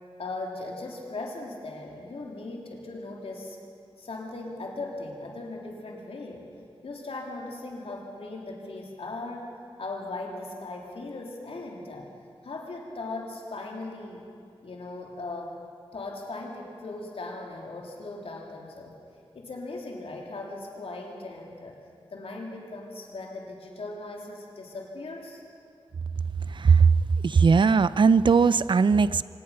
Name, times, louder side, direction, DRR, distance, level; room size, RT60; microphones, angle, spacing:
voice 1, 0.2-3.6 4.0-6.5 6.8-9.5 9.8-12.1 12.4-14.2 14.6-15.6 15.9-18.9 19.3-21.7 22.1-25.4, left 2 dB, 75° left, 0 dB, 3.3 m, -38 dB
voice 2, 26.6-26.9 27.2-29.2, right 5 dB, 55° right, 17 dB, 0.5 m, -19 dB
25.5 x 18.0 x 5.8 m, 2.5 s
wide cardioid pair, 100°, 10 cm